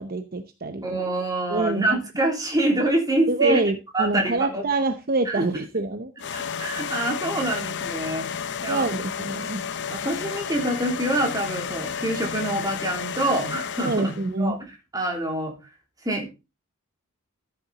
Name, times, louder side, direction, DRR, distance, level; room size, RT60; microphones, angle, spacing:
voice 1, 0.0-0.8 1.5-1.9 3.3-6.1 8.7-9.6 13.8-14.6, right 3 dB, 45° right, 10 dB, 0.8 m, -26 dB
voice 2, 0.8-3.6 3.9-4.6 5.2-5.4 6.5-8.3 8.6-8.9 9.9-15.5 16.0-16.3, right 1 dB, 15° right, 1 dB, 3.3 m, -26 dB
sound 1, 6.2-14.3, left 7 dB, 55° left, 0.8 m, -32 dB
13.5 x 7.7 x 4.1 m, 0.28 s
head